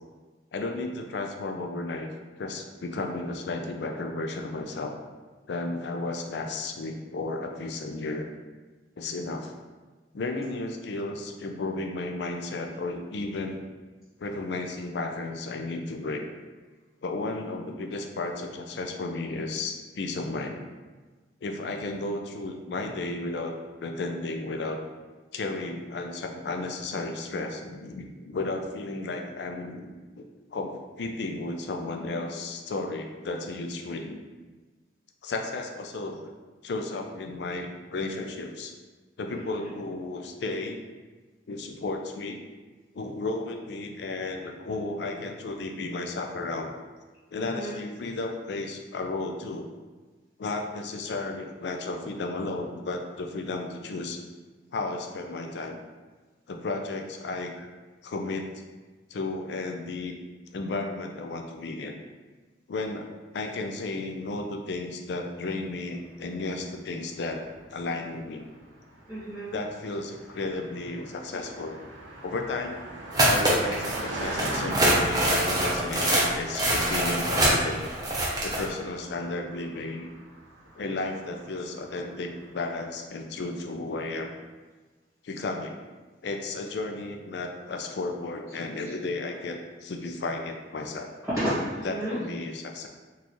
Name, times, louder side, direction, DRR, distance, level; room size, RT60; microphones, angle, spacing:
voice 1, 0.5-2.1 2.4-4.9 5.5-8.3 9.0-9.6 10.1-13.6 14.2-16.2 17.0-20.7 21.4-23.6 23.8-24.8 25.3-30.2 30.5-34.2 35.2-36.3 36.6-38.7 39.2-40.8 41.5-42.4 42.9-46.7 47.3-49.7 50.4-54.2 54.7-55.8 56.5-57.7 58.0-58.5 59.1-60.2 60.5-62.0 62.7-63.1 63.3-67.4 67.7-68.5 69.5-71.9 72.2-72.8 73.2-77.9 78.4-80.1 80.7-84.4 85.2-85.8 86.2-91.1 91.8-92.9, left 2 dB, 65° left, 4 dB, 0.4 m, -33 dB
voice 2, 39.3-39.7 47.4-47.7 69.1-69.6 91.2-92.2, equal, ahead, -13 dB, 1.2 m, -31 dB
Car passing by, 66.1-82.6, right 1 dB, 80° right, 0.5 m, -40 dB
sound 1, 73.1-74.0 74.4-78.6, right 1 dB, 20° right, 0.6 m, -24 dB
3.9 x 2.4 x 2.9 m, 1.3 s
head